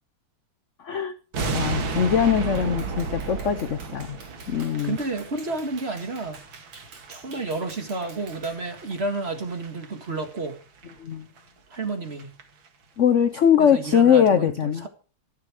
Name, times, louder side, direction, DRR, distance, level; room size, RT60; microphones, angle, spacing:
sound 1, 1.3-10.5 10.8-11.0 11.4-11.5 11.7-11.8 12.1-12.4 12.7-12.8, right 3 dB, 65° right, 2.6 m, -34 dB
voice 1, 1.5-4.2 4.5-5.0 11.0-11.3 13.0-14.9, left 8 dB, 70° left, 0.7 m, -21 dB
Clapping, 2.5-8.7, right 4 dB, 80° right, 3.5 m, -48 dB
voice 2, 4.8-6.4 7.1-10.6 11.7-12.4 13.6-14.9, right 3 dB, 30° right, 1.9 m, -31 dB
14.0 x 11.5 x 4.9 m
omnidirectional pair, 2.3 m